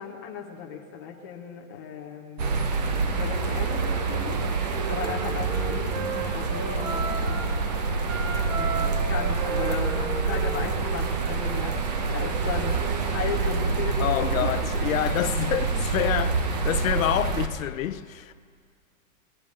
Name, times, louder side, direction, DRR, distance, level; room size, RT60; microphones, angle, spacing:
voice 1, 0.0-2.8 3.2-4.4 4.9-8.0 8.3-11.8 12.1-14.7, left 6 dB, 15° left, 0.5 m, -36 dB
sound 1, 2.4-17.5, right 4 dB, 30° right, 0.7 m, -27 dB
Wind instrument woodwind instrument, 4.2-7.6 8.0-11.7, right 4 dB, 70° right, 2.0 m, -35 dB
voice 2, 14.0-18.3, left 12 dB, 70° left, 0.6 m, -27 dB
21.0 x 8.4 x 6.4 m
hypercardioid pair, 170°, 42 cm